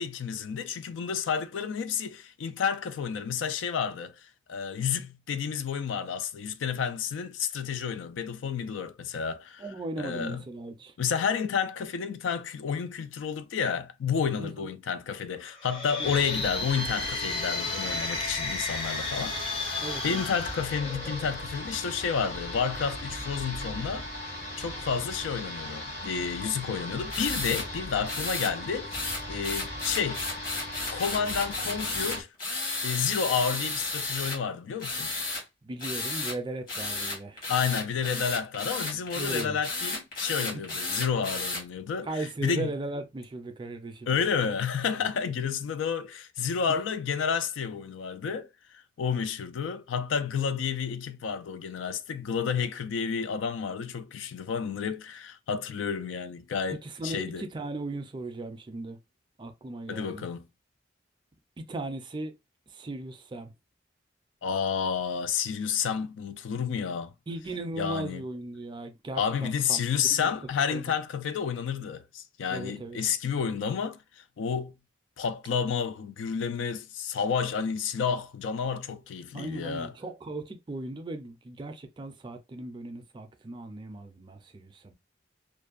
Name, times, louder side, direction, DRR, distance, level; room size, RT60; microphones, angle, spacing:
voice 1, 0.0-9.6 10.0-10.4 11.0-24.1 24.6-30.2 30.9-32.3 32.8-35.1 37.5-42.1 42.4-42.7 44.1-57.4 59.9-60.5 64.4-67.1 67.8-68.2 69.2-74.7 75.2-79.9, left 6 dB, 85° left, 0.4 m, -30 dB
voice 2, 9.6-10.9 14.4-14.7 16.0-16.1 19.8-20.2 35.6-37.5 39.1-39.6 40.5-40.6 42.0-44.2 56.8-59.0 59.4-60.3 61.6-62.3 62.7-63.5 67.3-70.3 70.7-70.9 72.5-73.0 79.3-84.9, right 2 dB, 25° right, 0.4 m, -37 dB
sound 1, 15.5-21.5, left 3 dB, 30° left, 0.6 m, -33 dB
sound 2, 16.0-32.2, left 1 dB, 65° left, 1.0 m, -38 dB
sound 3, 27.1-27.7 28.1-28.5 28.9-34.4 34.8-35.4 35.8-36.4 36.7-41.6, left 2 dB, 50° left, 1.2 m, -33 dB
2.5 x 2.1 x 2.3 m
head